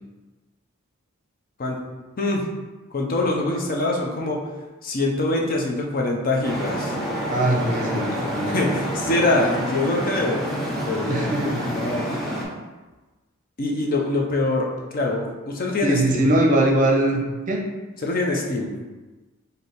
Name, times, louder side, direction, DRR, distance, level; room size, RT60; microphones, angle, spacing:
voice 1, 2.2-2.5 2.9-4.5 4.8-7.0 8.5-12.1 13.6-14.7 14.9-16.3 18.0-18.7, left 2 dB, 45° left, 0 dB, 0.6 m, -24 dB
Traffic noise roadway noise, 6.4-12.4, equal, ahead, 0.7 m, -28 dB
voice 2, 7.3-8.7 11.1-11.6 15.8-17.6, right 1 dB, 40° right, 0 dB, 0.6 m, -21 dB
3.3 x 2.7 x 4.1 m, 1.2 s
head